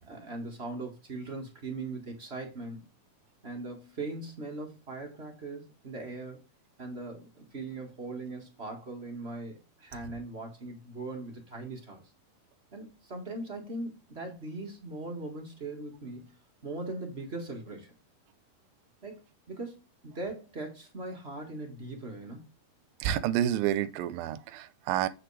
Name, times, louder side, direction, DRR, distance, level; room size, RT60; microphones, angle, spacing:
voice 1, 0.0-2.8 3.4-6.4 6.8-12.0 12.7-16.3 16.6-17.9 19.0-19.8 20.0-22.4, right 2 dB, 45° right, 0.8 m, -40 dB
voice 2, 23.0-25.1, right 11 dB, 90° right, 2.5 m, -29 dB
8.3 x 6.1 x 3.3 m
omnidirectional pair, 4.0 m